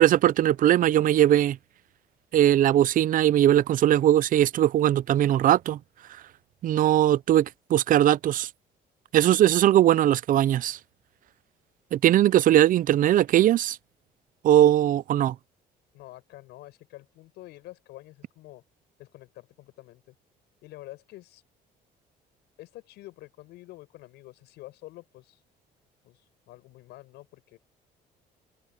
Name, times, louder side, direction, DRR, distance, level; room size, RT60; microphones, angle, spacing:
voice 1, 0.0-1.6 2.3-5.8 6.6-8.5 9.1-10.8 11.9-13.8 14.4-15.3, right 12 dB, 55° right, 0.5 m, -20 dB
voice 2, 15.9-18.6 19.0-20.1 20.6-21.4 22.6-25.4 26.0-27.6, left 17 dB, 85° left, 7.8 m, -47 dB
cardioid pair, 110°, 17 cm